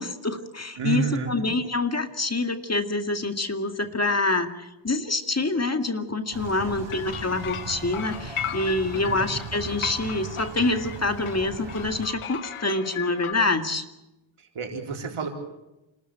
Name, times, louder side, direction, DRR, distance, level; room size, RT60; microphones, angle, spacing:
voice 1, 0.0-13.8, left 2 dB, 30° left, 7 dB, 2.1 m, -26 dB
voice 2, 0.8-1.4 6.6-6.9 8.9-9.3 14.4-15.3, right 5 dB, 85° right, 2 dB, 4.0 m, -30 dB
sound 1, 6.3-12.1, right 4 dB, 65° right, 5.1 m, -39 dB
sound 2, 6.9-13.3, left 9 dB, 90° left, 1.3 m, -37 dB
28.0 x 13.5 x 8.9 m, 0.96 s
cardioid pair, 60°, 49 cm